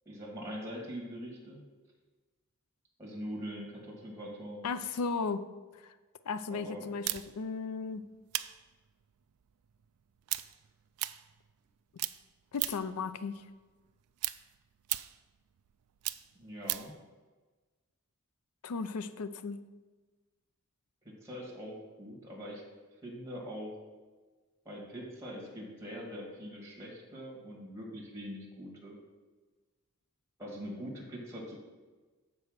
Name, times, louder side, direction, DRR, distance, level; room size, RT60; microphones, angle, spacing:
voice 1, 0.1-1.6 3.0-4.7 6.5-6.9 16.3-16.9 21.0-22.6 23.0-23.7 24.7-29.0 30.4-31.6, equal, 15° right, -3 dB, 2.0 m, -43 dB
voice 2, 4.6-5.5 5.8-5.9 6.3-8.1 12.5-13.4 18.6-19.7, left 4 dB, 90° left, 12 dB, 0.5 m, -35 dB
sound 1, 7.0-11.7 12.0-13.0 13.4-17.0, right 17 dB, 80° right, 0.3 m, -37 dB
7.0 x 4.8 x 6.5 m, 1.3 s
head